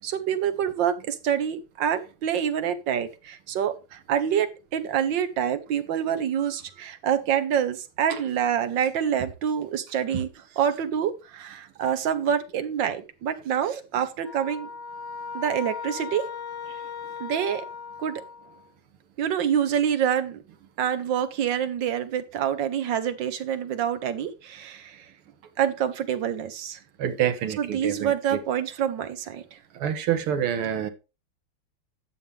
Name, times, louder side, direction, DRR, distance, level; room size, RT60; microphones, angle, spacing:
voice 1, 0.0-10.3 10.6-14.7 15.3-16.2 17.2-17.6 18.0-18.1 19.2-20.4 20.8-25.1 25.6-26.8 27.6-29.4, right 9 dB, 65° right, 1.5 m, -26 dB
sound 1, 14.2-18.7, left 5 dB, 75° left, 0.6 m, -37 dB
voice 2, 27.0-28.4 29.7-30.9, right 9 dB, 85° right, 2.0 m, -27 dB
11.0 x 7.1 x 3.4 m
omnidirectional pair, 2.3 m